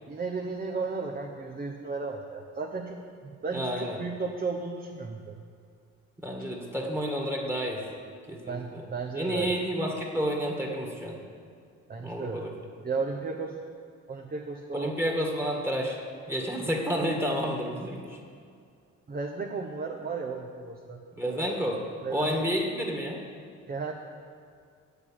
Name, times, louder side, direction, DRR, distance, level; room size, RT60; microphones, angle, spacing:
voice 1, 0.1-5.4 8.5-9.5 11.9-12.5 12.8-13.6 14.1-15.0 19.1-21.4 22.0-22.5 23.7-23.9, right 4 dB, 30° right, 0 dB, 0.9 m, -34 dB
voice 2, 3.5-4.0 6.2-7.8 8.3-8.8 9.2-11.2 12.0-12.5 14.7-16.0 16.3-18.2 21.2-21.8 22.1-23.2, equal, 10° right, 0 dB, 1.8 m, -30 dB
8.6 x 6.9 x 8.6 m, 2.2 s
cardioid pair, 90°, 30 cm